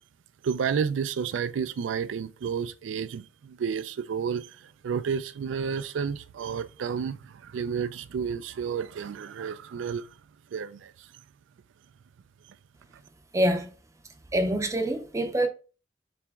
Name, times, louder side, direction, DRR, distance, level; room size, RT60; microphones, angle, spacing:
voice 1, 0.4-10.1 10.5-11.1, right 6 dB, 80° right, 0.3 m, -31 dB
voice 2, 13.3-13.7 14.3-15.5, right 1 dB, 15° right, 0.5 m, -25 dB
3.5 x 2.9 x 3.4 m
head